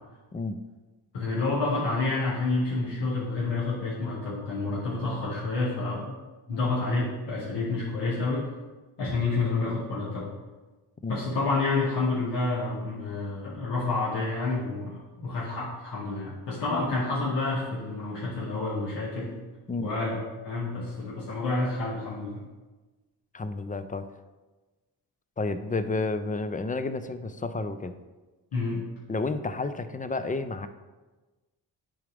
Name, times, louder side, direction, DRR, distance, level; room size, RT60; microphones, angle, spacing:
voice 1, 0.3-0.6 11.0-11.2 19.7-19.9 23.3-24.1 25.4-27.9 29.1-30.7, left 3 dB, 20° left, 10 dB, 0.4 m, -31 dB
voice 2, 1.1-6.2 6.5-8.5 9.0-10.3 11.1-19.3 19.8-20.2 20.4-22.4 28.5-28.8, left 3 dB, 75° left, -7 dB, 1.8 m, -29 dB
10.0 x 3.8 x 3.4 m, 1.2 s
cardioid pair, 80°, 42 cm